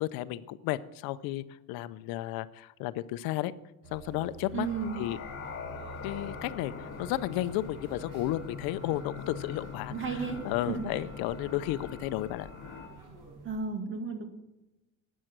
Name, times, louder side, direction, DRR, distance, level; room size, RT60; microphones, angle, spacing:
voice 1, 0.0-3.5 3.9-4.7 5.0-5.2 6.0-12.5, left 15 dB, 75° left, 15 dB, 0.7 m, -33 dB
sound 1, 3.8-13.6, right 3 dB, 60° right, 5.4 m, -48 dB
sound 2, 4.5-12.9, left 6 dB, 35° left, 2.1 m, -43 dB
voice 2, 4.5-5.0 9.9-10.4 10.7-11.0 13.4-14.2, right 5 dB, 35° right, 5 dB, 2.0 m, -33 dB
12.5 x 9.2 x 6.1 m, 0.99 s
cardioid pair, 150°, 36 cm